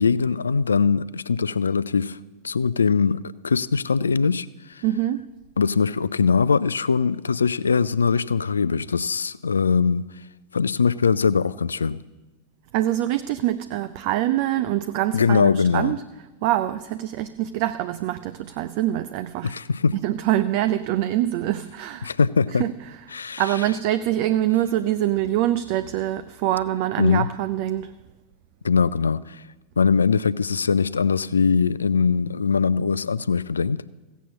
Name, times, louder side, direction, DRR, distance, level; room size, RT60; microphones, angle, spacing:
voice 1, 0.0-2.2 2.4-4.8 5.6-10.1 10.5-12.0 15.1-16.0 19.4-20.0 22.0-22.6 23.1-23.5 27.0-27.3 28.6-29.4 29.8-33.8, left 5 dB, 75° left, 17 dB, 0.4 m, -21 dB
voice 2, 4.8-5.3 12.7-16.0 16.4-19.5 20.0-22.1 22.6-22.7 23.4-27.9, right 13 dB, 45° right, 12 dB, 0.4 m, -24 dB
15.5 x 8.2 x 7.4 m, 1.2 s
figure-of-eight pair, 90°, 0 cm